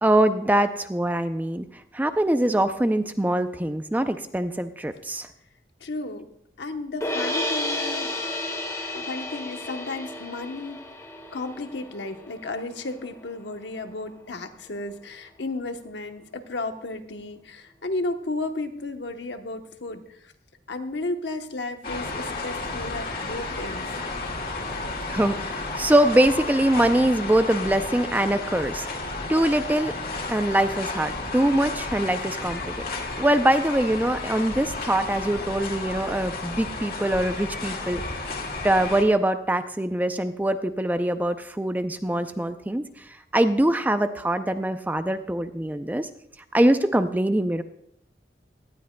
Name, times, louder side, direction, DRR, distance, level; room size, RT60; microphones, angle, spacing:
voice 1, 0.0-1.7 1.9-5.3 25.1-28.9 29.3-30.0 30.3-32.7 33.2-38.0 38.6-42.8 43.3-46.1 46.5-47.6, right 1 dB, 10° right, 9 dB, 0.4 m, -23 dB
voice 2, 5.8-6.3 6.6-8.1 8.9-10.9 11.3-20.3 20.7-24.0, left 2 dB, 85° left, 6 dB, 1.0 m, -33 dB
sound 1, 7.0-13.2, left 1 dB, 15° left, 1.7 m, -32 dB
sound 2, 21.8-39.0, left 3 dB, 55° left, 1.8 m, -32 dB
18.0 x 12.5 x 2.2 m, 0.74 s
head